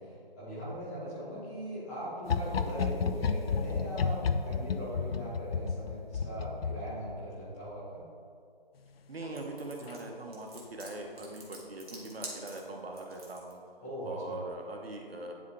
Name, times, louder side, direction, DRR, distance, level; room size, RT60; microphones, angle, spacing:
voice 1, 0.0-8.0 13.8-14.4, equal, 15° left, -12 dB, 1.5 m, -40 dB
sound 1, 2.2-7.4 9.2-9.6 9.9-10.0, left 5 dB, 75° left, 0.5 m, -32 dB
voice 2, 9.1-13.6 14.0-15.3, right 2 dB, 75° right, 1 dB, 1.1 m, -41 dB
sound 2, 9.3-13.5, right 2 dB, 40° right, 1.3 m, -47 dB
10.5 x 3.5 x 3.2 m, 2.4 s
figure-of-eight pair, 160°, 30 cm